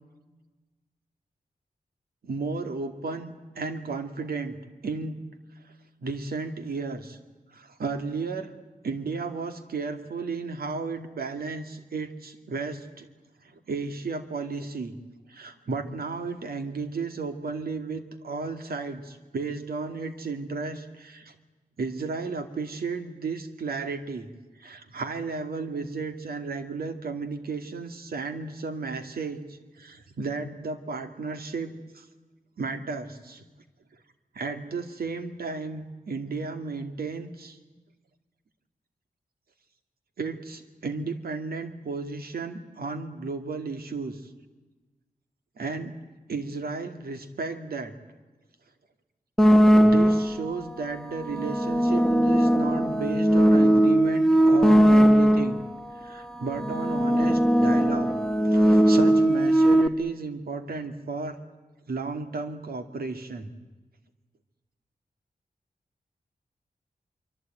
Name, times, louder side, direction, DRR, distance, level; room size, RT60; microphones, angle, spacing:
voice 1, 2.2-4.6 4.8-5.2 5.6-5.7 6.0-7.2 7.5-8.5 8.8-13.1 13.4-14.9 15.3-21.3 21.8-24.3 24.6-32.1 32.6-33.4 34.3-37.6 40.2-44.3 45.6-45.9 46.3-47.9 49.8-55.6 56.0-58.1 58.5-61.4 61.9-63.5, right 4 dB, 90° right, 8 dB, 2.3 m, -34 dB
sound 1, 49.4-50.5 51.2-55.7 56.5-59.9, equal, 5° left, 1.2 m, -19 dB
25.5 x 24.5 x 9.1 m, 1.2 s
wide cardioid pair, 85°, 15 cm